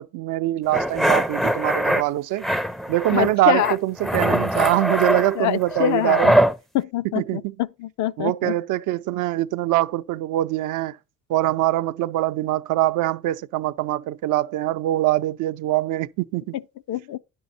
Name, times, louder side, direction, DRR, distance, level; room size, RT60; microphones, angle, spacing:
voice 1, 0.0-2.5 2.9-6.3 7.1-7.5 8.2-11.0 11.3-16.5, right 15 dB, 85° right, 0.5 m, -23 dB
sound 1, 0.7-2.0 2.4-3.3 3.6-6.5, equal, ahead, 0.4 m, -22 dB
voice 2, 3.1-3.8 5.4-6.4 6.7-7.4 7.8-8.5 16.9-17.2, left 12 dB, 70° left, 0.5 m, -24 dB
10.0 x 6.2 x 4.1 m
cardioid pair, 90°, 30 cm